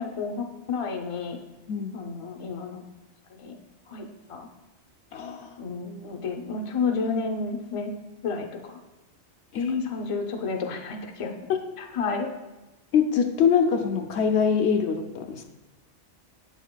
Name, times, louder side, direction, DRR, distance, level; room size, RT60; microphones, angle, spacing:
voice 1, 0.0-1.4 1.9-2.8 3.3-3.5 3.9-4.5 5.6-7.9 8.2-8.8 9.5-11.3 11.8-12.3, left 4 dB, 35° left, 2 dB, 0.6 m, -31 dB
voice 2, 5.1-5.5 9.5-9.9 12.9-15.5, left 6 dB, 70° left, 5 dB, 0.8 m, -24 dB
8.4 x 7.1 x 2.2 m, 1.1 s
omnidirectional pair, 1.2 m